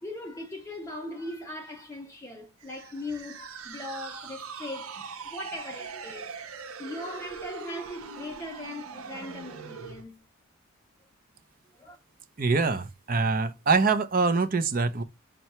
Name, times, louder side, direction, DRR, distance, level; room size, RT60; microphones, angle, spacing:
voice 1, 0.0-6.3 6.8-10.2 11.8-12.0, left 1 dB, 15° left, 0.6 m, -39 dB
sound 1, 2.6-10.0, right 5 dB, 80° right, 0.7 m, -41 dB
voice 2, 12.4-15.0, right 4 dB, 40° right, 0.6 m, -24 dB
5.5 x 2.2 x 2.9 m
head